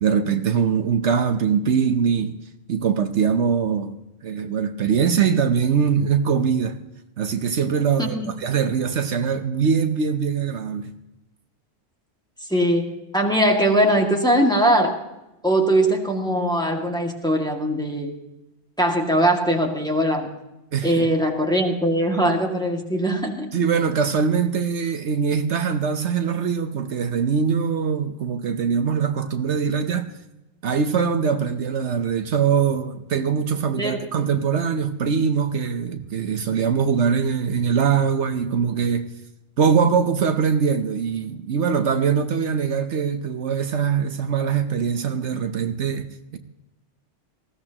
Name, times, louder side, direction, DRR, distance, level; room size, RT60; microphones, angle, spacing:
voice 1, 0.0-2.3 2.7-3.9 4.2-6.8 7.2-10.9 20.7-21.1 23.5-30.1 30.6-39.1 39.6-46.4, right 6 dB, 70° right, 1.1 m, -22 dB
voice 2, 8.0-8.3 12.5-15.0 15.4-18.1 18.8-20.3 20.8-23.5 33.8-34.0, right 1 dB, 5° left, 2.0 m, -21 dB
20.0 x 16.0 x 2.9 m
omnidirectional pair, 1.2 m